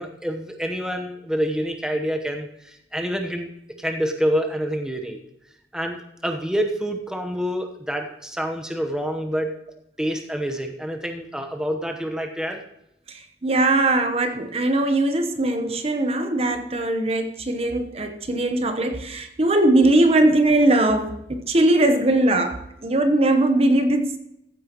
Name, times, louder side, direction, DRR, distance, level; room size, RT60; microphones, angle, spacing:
voice 1, 0.0-3.5 3.8-5.2 5.7-9.5 10.0-12.6, equal, 5° right, 3 dB, 1.0 m, -27 dB
voice 2, 13.1-24.2, right 2 dB, 35° right, 7 dB, 0.9 m, -20 dB
15.0 x 9.2 x 3.0 m, 0.80 s
head